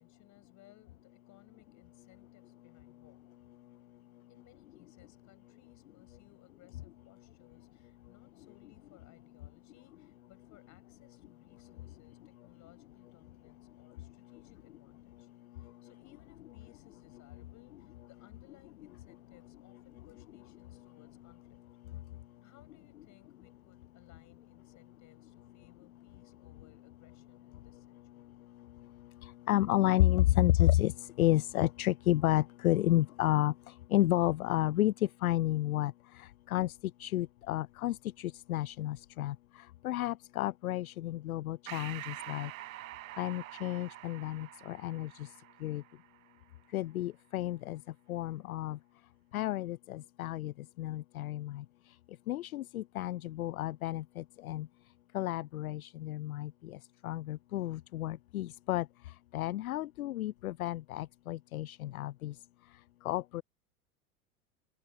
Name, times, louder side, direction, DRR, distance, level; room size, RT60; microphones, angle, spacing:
voice 1, 0.0-3.2 4.3-15.3 15.5-21.6 22.4-28.3, left 15 dB, 40° left, 6.6 m, -64 dB
voice 2, 29.2-36.7 37.0-39.4 39.8-42.5 43.2-45.3 45.6-45.8 46.7-47.8 48.1-48.8 49.3-51.6 52.3-54.7 55.1-56.8 57.0-58.9 59.3-62.3 63.0-63.4, left 15 dB, 70° left, 0.5 m, -31 dB
Breathing, 41.7-46.5, right 16 dB, 65° right, 0.8 m, -47 dB
open air
figure-of-eight pair, 80°, 44 cm